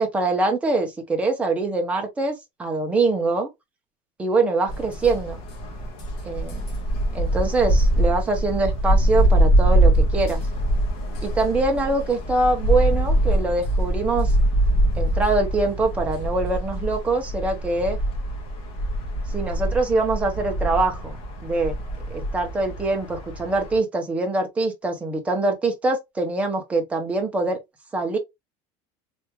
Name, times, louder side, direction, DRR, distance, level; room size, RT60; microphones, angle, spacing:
voice 1, 0.0-3.5 4.2-5.4 6.2-6.6 7.1-10.4 11.2-14.3 15.0-18.0 19.3-21.2 21.4-21.8 22.1-27.6 27.9-28.2, right 3 dB, 10° right, 0.7 m, -24 dB
sound 1, 4.7-23.8, right 1 dB, 45° left, 1.2 m, -23 dB
3.4 x 2.5 x 2.9 m
cardioid pair, 170°, 13 cm